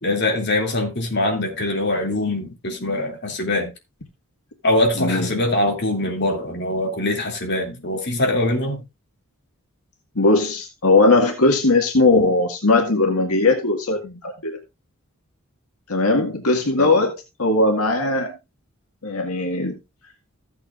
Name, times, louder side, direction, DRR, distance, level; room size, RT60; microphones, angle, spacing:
voice 1, 0.0-3.7 4.6-8.8 16.8-16.9, left 1 dB, 50° left, 2.8 m, -23 dB
voice 2, 5.0-5.4 10.2-14.6 15.9-18.3 19.0-19.8, left 2 dB, 90° left, 1.9 m, -19 dB
15.0 x 8.3 x 2.5 m
head